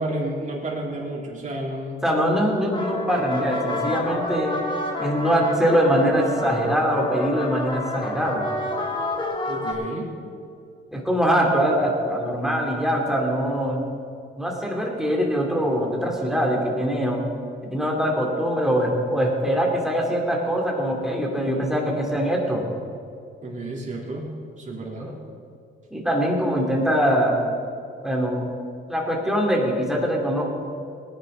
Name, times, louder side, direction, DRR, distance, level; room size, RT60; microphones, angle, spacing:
voice 1, 0.0-2.0 9.5-10.1 23.4-25.1, right 1 dB, 40° right, -3 dB, 3.5 m, -31 dB
voice 2, 2.0-4.5 5.0-8.5 10.9-13.8 14.4-17.2 17.6-22.6 25.0-25.1 25.9-27.4 28.0-28.4 28.9-30.5, equal, ahead, -1 dB, 2.9 m, -23 dB
sound 1, 2.6-9.7, left 2 dB, 25° left, 1.8 m, -29 dB
18.5 x 10.0 x 3.9 m, 2.4 s
cardioid pair, 90°, 20 cm